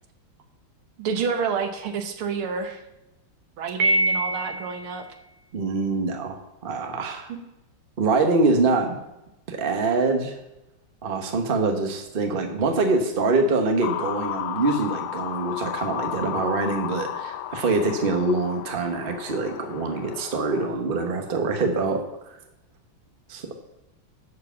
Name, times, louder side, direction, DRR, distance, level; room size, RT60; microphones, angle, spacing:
voice 1, 1.0-2.8 3.6-5.1 7.3-7.4, right 6 dB, 80° right, 7 dB, 1.9 m, -29 dB
Piano, 3.8-4.9, right 1 dB, 60° right, 1.5 m, -23 dB
voice 2, 5.5-7.3 8.0-9.0 9.5-10.3 11.0-22.4 23.3-23.5, right 3 dB, 35° right, 4 dB, 1.0 m, -24 dB
sound 1, 13.8-20.7, left 12 dB, 85° left, 1.5 m, -33 dB
11.0 x 4.8 x 7.2 m, 0.93 s
omnidirectional pair, 2.3 m